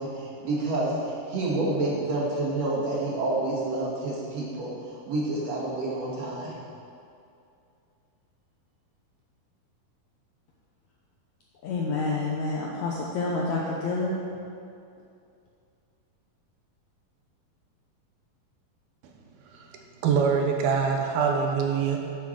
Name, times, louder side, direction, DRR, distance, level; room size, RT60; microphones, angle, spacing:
voice 1, 0.0-6.5, right 2 dB, 50° right, -6 dB, 2.8 m, -29 dB
voice 2, 11.6-14.1, left 3 dB, 75° left, -3 dB, 1.8 m, -28 dB
voice 3, 20.0-22.0, right 6 dB, 85° right, 2 dB, 2.8 m, -24 dB
9.6 x 6.9 x 6.6 m, 2.5 s
omnidirectional pair, 4.3 m